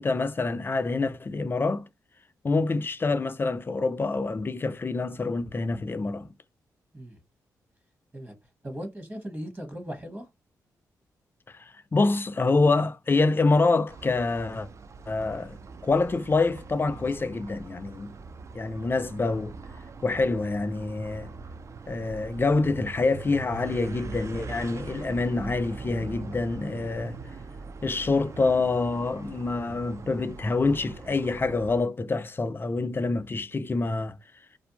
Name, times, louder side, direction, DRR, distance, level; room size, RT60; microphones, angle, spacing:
voice 1, 0.0-1.8 2.4-6.3 11.5-14.7 15.1-15.6 15.8-18.1 18.5-19.6 20.0-21.3 21.9-27.2 27.8-34.2, left 3 dB, 30° left, 0.4 m, -26 dB
voice 2, 8.6-10.3, equal, 30° right, 1.0 m, -38 dB
sound 1, 13.9-31.8, right 5 dB, 45° right, 0.3 m, -42 dB
2.5 x 2.1 x 2.8 m
supercardioid pair, 50°, 7 cm